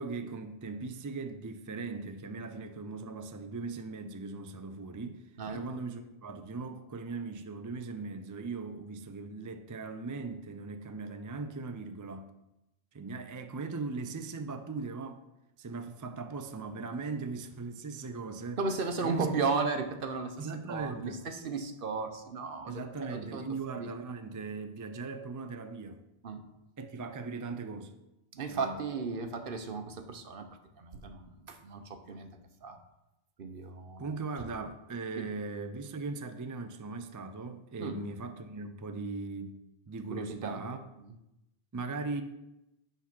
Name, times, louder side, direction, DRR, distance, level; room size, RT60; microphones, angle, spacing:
voice 1, 0.0-12.3 12.9-15.2 15.6-18.6 19.0-19.3 20.4-21.2 22.7-26.0 26.8-27.9 28.4-28.8 34.0-39.6 39.9-40.8 41.7-42.2, right 3 dB, 30° right, 8 dB, 0.3 m, -39 dB
voice 2, 18.6-20.3 20.7-22.8 23.1-23.4 23.7-23.9 26.2-26.4 28.3-30.5 30.8-32.3 32.6-32.8 33.4-34.1 35.2-35.3 37.8-37.9 40.1-40.6, right 4 dB, 60° right, 7 dB, 0.9 m, -35 dB
8.3 x 3.9 x 6.0 m, 0.91 s
omnidirectional pair, 1.0 m